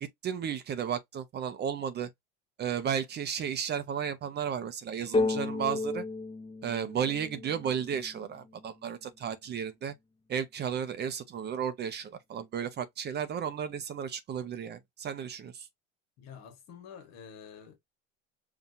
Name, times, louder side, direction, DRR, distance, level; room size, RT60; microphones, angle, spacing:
voice 1, 0.0-2.1 2.6-6.0 6.6-9.9 10.3-15.7, right 8 dB, 35° right, 0.6 m, -34 dB
sound 1, 5.1-8.8, left 3 dB, 20° left, 0.9 m, -33 dB
voice 2, 16.2-17.8, left 7 dB, 60° left, 1.3 m, -48 dB
5.5 x 2.4 x 2.6 m
supercardioid pair, 95°, 30 cm